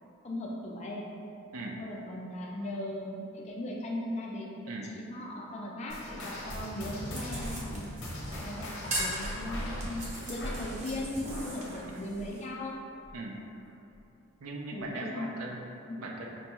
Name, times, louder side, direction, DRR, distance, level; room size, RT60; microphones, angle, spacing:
voice 1, 0.2-1.0 1.8-4.6 4.9-7.9 8.4-12.8 14.7-15.3 15.9-16.0, left 1 dB, 30° left, -2 dB, 0.4 m, -38 dB
sound 1, 5.9-12.8 13.0-13.3 13.9-14.0 14.8-14.9, left 1 dB, 55° left, 0.7 m, -39 dB
sound 2, 7.1-12.4, right 1 dB, 30° right, 0.6 m, -40 dB
voice 2, 14.4-15.7 16.0-16.3, right 2 dB, 75° right, 0 dB, 0.5 m, -39 dB
5.1 x 2.2 x 2.9 m, 2.7 s
head